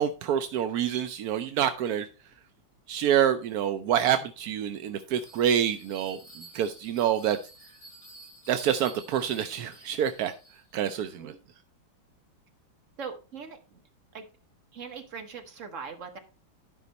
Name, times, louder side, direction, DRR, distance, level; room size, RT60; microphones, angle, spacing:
voice 1, 0.0-2.1 2.9-6.2 6.5-7.4 8.5-10.3 10.7-11.3, right 9 dB, 70° right, 9 dB, 0.9 m, -27 dB
Bell, 5.2-10.8, right 2 dB, 75° left, 6.8 m, -51 dB
voice 2, 13.0-13.8 14.1-14.2 14.7-16.2, right 6 dB, 40° right, 4 dB, 1.6 m, -40 dB
11.5 x 5.2 x 4.0 m, 0.32 s
omnidirectional pair, 2.1 m